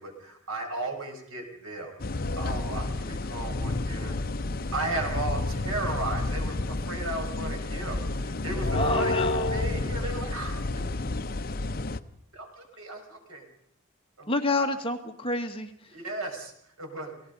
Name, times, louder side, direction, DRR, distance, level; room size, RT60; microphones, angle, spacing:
voice 1, 0.0-4.2 4.7-10.9 11.4-11.5 12.3-13.5 14.2-14.7 15.9-16.5 16.8-17.1, right 2 dB, 80° right, 3 dB, 5.7 m, -36 dB
sound 1, 2.0-12.0, left 2 dB, 45° left, 0.7 m, -30 dB
voice 2, 8.7-9.5 14.3-15.9, left 2 dB, 25° left, 5 dB, 1.5 m, -29 dB
28.5 x 18.0 x 5.3 m, 0.71 s
head